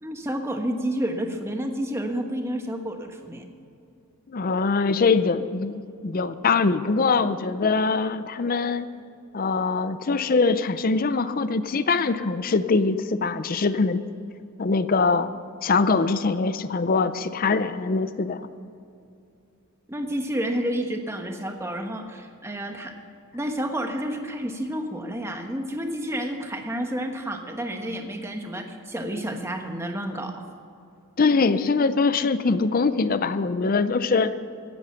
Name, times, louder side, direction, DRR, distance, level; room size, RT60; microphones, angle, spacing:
voice 1, 0.0-3.4 19.9-22.9 23.3-30.5, equal, 10° right, 4 dB, 1.1 m, -30 dB
voice 2, 4.3-8.9 9.3-14.0 14.6-15.3 15.6-18.5 31.2-34.3, left 4 dB, 40° left, 13 dB, 0.5 m, -23 dB
16.0 x 10.5 x 5.9 m, 2.6 s
head